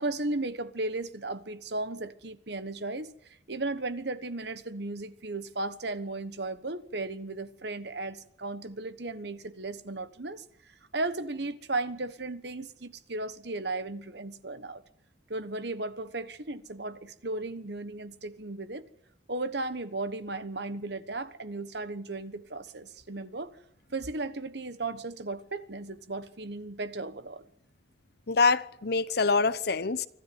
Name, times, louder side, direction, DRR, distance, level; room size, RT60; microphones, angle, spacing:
voice 1, 0.0-3.1 3.5-10.4 10.9-14.8 15.3-18.8 19.3-23.5 23.9-27.4, right 2 dB, 60° right, 1.2 m, -35 dB
voice 2, 28.3-30.1, left 4 dB, 55° left, 0.8 m, -25 dB
25.0 x 13.0 x 9.4 m
head